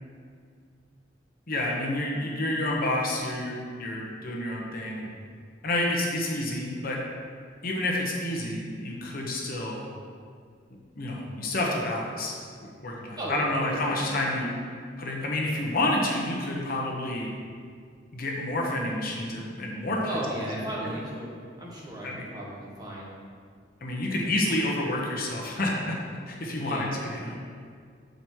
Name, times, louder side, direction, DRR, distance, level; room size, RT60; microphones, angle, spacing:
voice 1, 1.5-5.1 5.6-7.0 7.6-9.8 10.9-12.3 12.6-14.5 15.0-17.3 18.1-20.1 20.5-21.0 22.0-22.2 23.8-27.3, left 1 dB, 50° left, -2 dB, 1.1 m, -29 dB
voice 2, 13.2-14.0 20.1-21.3 21.6-23.1 24.1-24.3 26.6-26.9, right 1 dB, 20° right, -5 dB, 1.6 m, -36 dB
7.8 x 5.3 x 4.6 m, 2.1 s
head